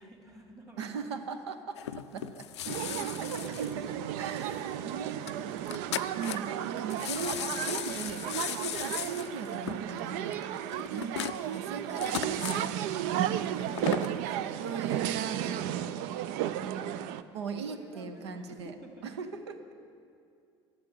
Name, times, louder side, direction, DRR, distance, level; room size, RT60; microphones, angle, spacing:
voice 1, 0.0-1.1 2.7-3.3 4.3-5.5 10.9-11.4 13.5-15.8 16.2-17.0 17.7-19.1, right 1 dB, 25° right, 1 dB, 2.6 m, -51 dB
voice 2, 0.8-2.5 3.3-5.3 6.2-8.2 8.5-10.4 10.9-11.2 11.5-13.3 14.6-15.6 16.6-17.0 17.3-18.7 19.0-19.6, right 6 dB, 80° right, 8 dB, 0.8 m, -39 dB
sound 1, 1.8-4.5 4.8-4.9 5.3-5.4 5.6-6.6 6.9-12.7 13.5-14.2 14.7-14.8, left 12 dB, 85° left, 0.4 m, -37 dB
sound 2, 2.6-17.2, right 11 dB, 65° right, 0.4 m, -34 dB
11.0 x 6.5 x 9.4 m, 2.4 s
hypercardioid pair, 65°, 14 cm